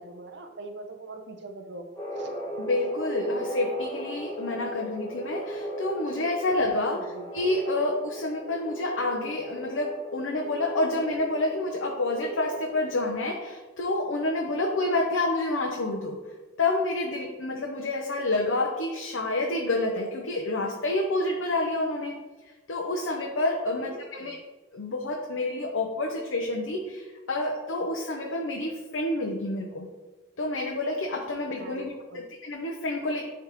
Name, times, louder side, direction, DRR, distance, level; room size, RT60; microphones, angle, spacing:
voice 1, 0.0-2.4 7.0-7.3 23.7-24.3 31.6-32.2, right 2 dB, 65° right, 5 dB, 0.7 m, -43 dB
sound 1, 2.0-13.1, right 1 dB, 20° left, 1.2 m, -37 dB
voice 2, 2.6-16.2 16.6-22.2 22.7-24.3 24.7-29.9 30.4-33.2, left 2 dB, 80° left, 0 dB, 0.7 m, -28 dB
10.0 x 3.5 x 3.0 m, 1.2 s
head